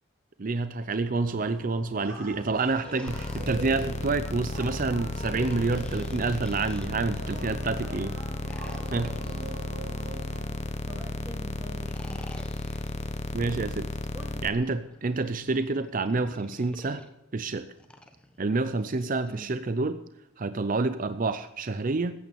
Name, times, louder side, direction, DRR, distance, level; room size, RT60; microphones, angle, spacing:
voice 1, 0.4-8.2 8.9-9.1 13.3-13.9 14.4-17.0 17.3-17.7 18.4-20.0 20.4-22.1, right 3 dB, 40° right, 12 dB, 0.5 m, -28 dB
sound 1, 1.1-11.3, right 3 dB, 85° right, 3.5 m, -43 dB
sound 2, 2.5-4.3 5.1-7.5 8.4-10.9 11.7-13.3 14.3-17.1 17.8-19.5, equal, 5° left, 1.0 m, -51 dB
sound 3, 3.1-14.5, left 2 dB, 35° left, 1.0 m, -34 dB
voice 2, 10.9-12.4 14.1-14.4 19.3-19.5, equal, 15° right, -2 dB, 1.7 m, -45 dB
14.5 x 9.2 x 7.0 m, 0.89 s
head